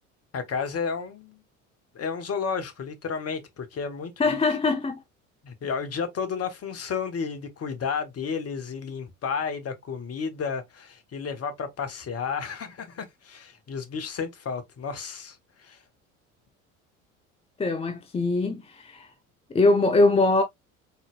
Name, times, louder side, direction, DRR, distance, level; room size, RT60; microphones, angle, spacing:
voice 1, 0.3-1.4 1.9-4.1 5.4-15.8, left 6 dB, 35° left, 1.3 m, -32 dB
voice 2, 4.2-5.0 17.6-19.1 19.5-20.4, left 3 dB, 15° left, 0.6 m, -22 dB
4.2 x 3.9 x 2.3 m
figure-of-eight pair, 65°, 43 cm